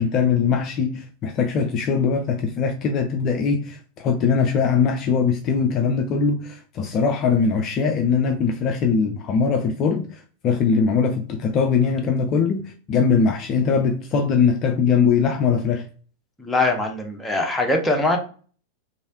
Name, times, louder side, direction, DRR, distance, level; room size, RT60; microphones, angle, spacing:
voice 1, 0.0-15.8, left 5 dB, 35° left, 0.4 m, -21 dB
voice 2, 16.4-18.2, left 2 dB, 5° left, 0.7 m, -22 dB
3.1 x 2.6 x 2.7 m
figure-of-eight pair, 90°, 0 cm